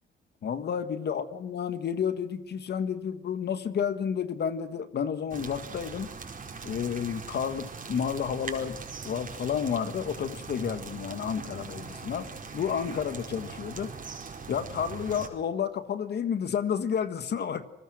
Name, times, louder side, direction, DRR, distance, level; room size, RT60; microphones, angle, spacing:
voice 1, 0.4-6.1 6.6-8.8 9.0-12.3 12.5-13.9 14.5-17.6, left 7 dB, 55° left, 11 dB, 1.6 m, -31 dB
sound 1, 5.3-15.3, right 5 dB, 40° right, 4.6 m, -41 dB
28.5 x 19.0 x 6.4 m, 0.98 s
cardioid pair, 90°, 20 cm